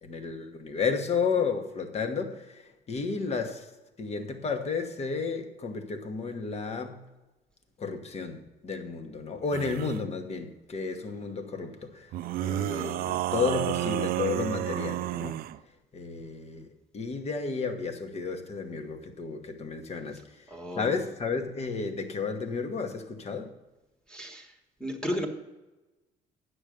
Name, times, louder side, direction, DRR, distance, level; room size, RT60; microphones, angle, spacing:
voice 1, 0.0-3.7 4.0-7.1 7.8-12.1 12.4-15.4 15.9-20.5 20.7-23.5, left 5 dB, 40° left, 1.2 m, -32 dB
sound 1, 9.5-10.0 12.1-15.6, right 13 dB, 60° right, 0.4 m, -31 dB
voice 2, 20.5-21.0 24.1-25.3, equal, 5° left, 1.4 m, -34 dB
9.0 x 6.3 x 6.4 m
cardioid pair, 110°, 17 cm